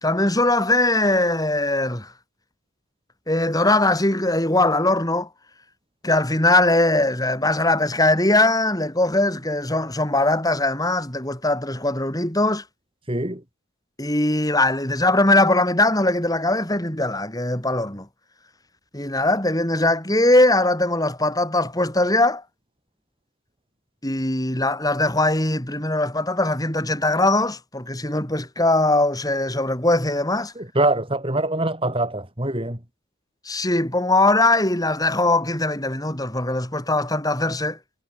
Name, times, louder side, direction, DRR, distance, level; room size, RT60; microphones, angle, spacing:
voice 1, 0.0-2.1 3.3-5.3 6.0-12.6 14.0-18.1 18.9-22.4 24.0-30.5 33.5-37.8, left 2 dB, 15° left, 4.2 m, -21 dB
voice 2, 13.1-13.4 30.5-32.8, right 2 dB, 25° right, 4.7 m, -24 dB
head